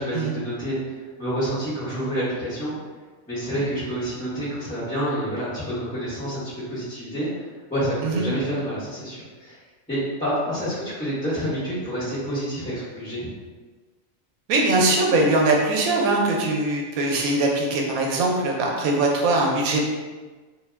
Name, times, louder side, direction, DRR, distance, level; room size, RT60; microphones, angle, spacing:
voice 1, 0.0-2.7 3.3-7.3 7.7-9.6 9.9-13.3, equal, 5° left, -15 dB, 0.9 m, -28 dB
voice 2, 14.5-19.8, right 2 dB, 85° right, 0 dB, 1.1 m, -21 dB
2.7 x 2.1 x 3.3 m, 1.3 s
omnidirectional pair, 1.4 m